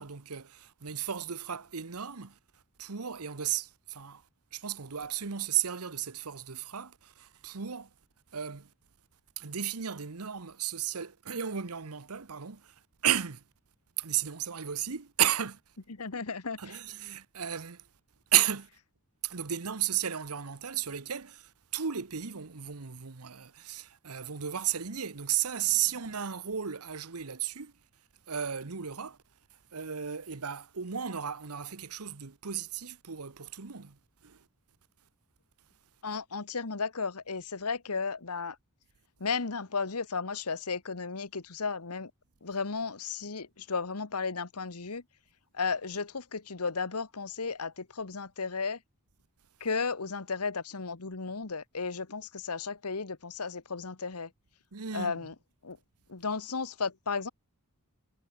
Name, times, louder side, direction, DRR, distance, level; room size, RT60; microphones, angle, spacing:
voice 1, 0.0-2.4 2.8-4.2 4.5-7.9 8.3-8.7 9.4-13.4 14.0-15.6 16.6-17.9 18.3-18.7 19.2-27.7 28.3-29.2 29.7-34.4 54.7-55.1, right 10 dB, 80° right, 1.1 m, -34 dB
voice 2, 16.0-16.6 36.0-38.6 39.2-42.1 42.4-45.0 45.5-48.8 49.6-54.3 54.9-55.3 55.6-55.8 56.1-57.3, left 4 dB, 90° left, 1.4 m, -34 dB
head